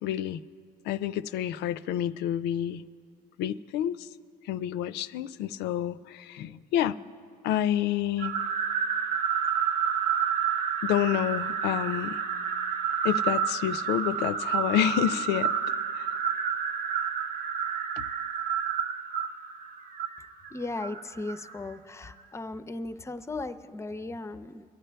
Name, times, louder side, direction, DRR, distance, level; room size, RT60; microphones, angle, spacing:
voice 1, 0.0-0.4 0.9-2.8 3.4-4.1 4.5-7.0 7.4-8.3 10.8-12.2 13.0-15.5 15.9-16.1 18.0-18.1, left 11 dB, 85° left, 15 dB, 0.4 m, -28 dB
sound 1, 8.2-21.6, right 7 dB, 55° right, 0.8 m, -29 dB
voice 2, 20.5-24.6, left 2 dB, 15° left, 11 dB, 0.5 m, -37 dB
23.5 x 11.0 x 3.4 m, 2.2 s
cardioid pair, 110°, 17 cm